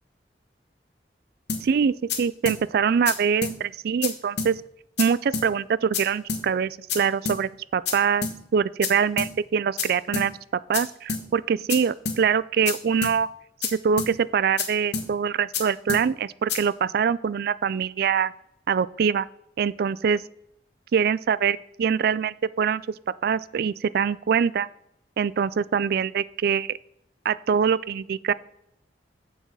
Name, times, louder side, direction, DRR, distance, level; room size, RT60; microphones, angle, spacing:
sound 1, 1.5-1.6 2.1-2.2 2.5-2.6 3.1-3.2 3.4-3.6 4.0-4.1 4.4-4.5 5.0-5.1 5.3-5.5 5.9-6.0 6.3-6.4 6.9-7.0 7.3-7.4 7.9-8.0 8.2-8.4 8.8-8.9 9.2-9.3 9.8-9.9 10.1-10.3 10.7-10.8 11.1-11.2 11.7-11.8 12.1-12.2 12.7-12.8 13.0-13.2 13.6-13.7 14.0-14.1 14.6-14.7 14.9-15.1 15.5-15.6 15.9-16.0 16.5-16.6, left 5 dB, 70° left, 1.4 m, -28 dB
voice 1, 1.6-4.6 5.0-8.3 8.5-13.3 13.6-18.3 18.7-19.3 19.6-20.2 20.9-22.8 23.2-24.7 25.2-26.8 27.2-28.3, right 6 dB, 60° right, 19 dB, 0.3 m, -24 dB
7.3 x 7.2 x 5.5 m, 0.78 s
head